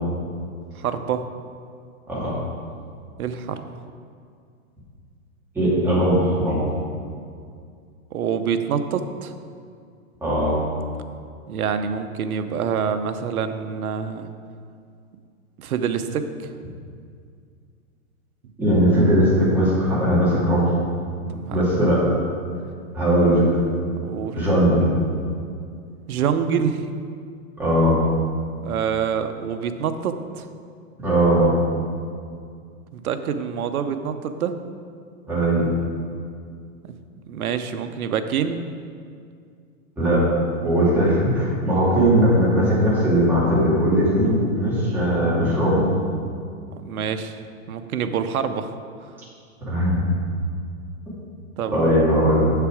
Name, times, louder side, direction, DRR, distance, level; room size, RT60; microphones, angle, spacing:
voice 1, 0.8-1.2 3.2-3.6 8.1-9.3 11.5-14.3 15.6-16.5 21.3-21.6 24.0-24.4 26.1-26.8 28.6-30.5 32.9-34.5 37.3-38.6 46.7-47.4 47.7-48.7 51.6-52.0, right 7 dB, 90° right, 9 dB, 0.8 m, -26 dB
voice 2, 5.5-6.6 10.2-10.6 18.6-20.6 21.5-22.1 22.9-23.5 24.3-24.9 27.6-28.0 31.0-31.5 35.3-35.7 40.0-40.3 40.6-45.8 49.7-50.1 51.7-52.5, equal, 5° right, -9 dB, 2.2 m, -19 dB
7.6 x 6.8 x 4.8 m, 2.3 s
hypercardioid pair, 160°, 42 cm